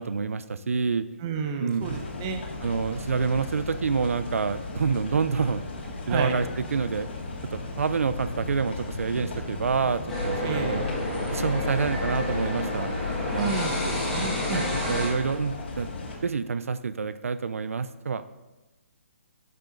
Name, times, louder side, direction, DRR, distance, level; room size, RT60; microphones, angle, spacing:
voice 1, 0.0-1.1 1.6-2.0 2.6-5.7 6.1-7.1 7.5-10.9 11.3-12.9 13.3-13.6 14.5-15.9 16.2-18.2, right 5 dB, 85° right, 13 dB, 0.6 m, -27 dB
voice 2, 1.2-2.4 6.1-6.4 10.4-10.8 13.4-14.6, right 5 dB, 20° right, 5 dB, 0.7 m, -31 dB
sound 1, 1.8-16.2, left 3 dB, 50° left, 2.3 m, -37 dB
sound 2, 10.1-15.1, left 2 dB, 5° left, 1.9 m, -29 dB
11.5 x 7.2 x 3.9 m, 1.1 s
hypercardioid pair, 175°, 7 cm